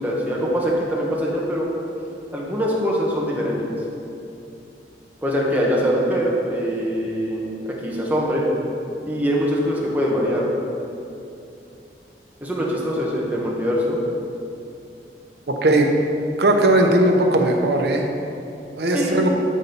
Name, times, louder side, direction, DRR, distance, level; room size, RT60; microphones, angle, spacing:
voice 1, 0.0-1.7 2.3-3.8 5.2-8.4 9.0-10.5 12.4-14.0 18.9-19.2, equal, 10° right, -4 dB, 1.3 m, -23 dB
voice 2, 16.4-18.1 18.8-19.3, right 1 dB, 65° right, 2 dB, 0.9 m, -17 dB
12.0 x 4.2 x 5.4 m, 2.7 s
head